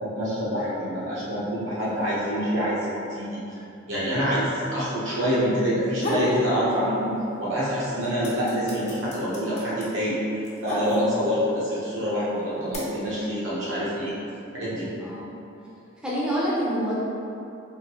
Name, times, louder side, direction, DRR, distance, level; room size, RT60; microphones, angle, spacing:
voice 1, 0.0-2.8 3.1-3.6 3.9-7.1 7.4-14.1 14.5-14.9, equal, 75° right, -8 dB, 1.0 m, -26 dB
voice 2, 1.7-2.1 15.0-15.2 16.0-16.9, equal, 5° right, -9 dB, 0.6 m, -27 dB
sound 1, 5.7-6.4 6.8-7.5 7.8-11.4 12.1-12.8, left 1 dB, 35° left, 0.7 m, -32 dB
3.6 x 2.6 x 2.9 m, 2.7 s
head